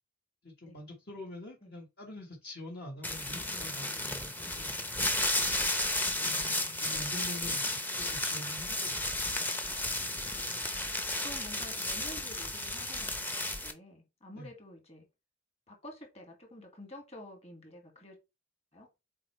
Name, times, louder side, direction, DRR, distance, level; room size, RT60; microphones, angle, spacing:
voice 1, 0.4-4.7 6.2-9.1 14.4-14.5, left 1 dB, 50° left, 1.4 m, -45 dB
sound 1, 3.0-13.7, left 1 dB, 10° left, 0.8 m, -33 dB
voice 2, 6.2-7.3 10.5-15.1 15.7-18.2 18.7-18.9, left 1 dB, 30° left, 2.0 m, -50 dB
7.5 x 4.3 x 3.2 m
head